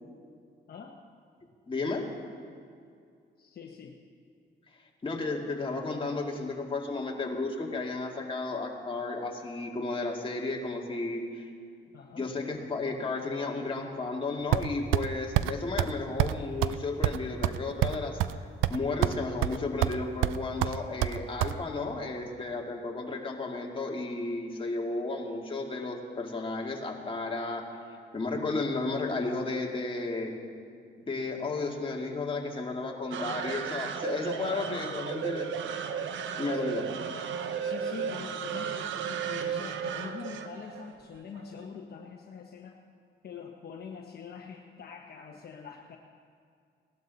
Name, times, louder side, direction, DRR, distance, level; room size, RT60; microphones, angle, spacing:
voice 1, 1.7-2.1 5.0-11.5 12.2-18.2 18.7-27.7 28.1-30.3 31.0-35.5 36.4-36.9, left 3 dB, 25° left, 0 dB, 2.0 m, -33 dB
voice 2, 3.4-4.0 11.9-12.3 34.2-35.0 37.6-42.8 43.2-46.0, left 6 dB, 50° left, 1 dB, 1.0 m, -44 dB
sound 1, 14.5-15.1 15.4-15.5 15.8-15.9 16.2-16.4 16.6-16.8 17.0-18.4 18.6-19.2 19.4-20.0 20.2-21.5, right 15 dB, 90° right, 0.4 m, -26 dB
sound 2, 33.1-41.5, right 7 dB, 70° right, 0.8 m, -34 dB
18.5 x 12.0 x 4.0 m, 2.3 s
cardioid pair, 90°, 20 cm